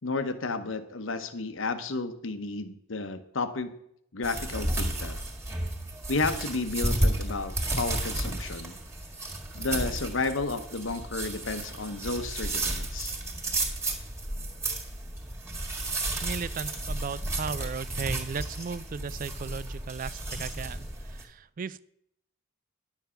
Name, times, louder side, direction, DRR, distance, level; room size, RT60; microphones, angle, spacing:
voice 1, 0.0-3.7 4.1-5.2 6.1-8.8 9.5-13.1, left 3 dB, 80° left, 10 dB, 0.9 m, -32 dB
sound 1, 4.2-21.2, right 1 dB, 15° right, 1.7 m, -32 dB
voice 2, 16.2-21.9, right 5 dB, 45° right, 19 dB, 0.4 m, -36 dB
10.5 x 7.3 x 5.7 m, 0.73 s
head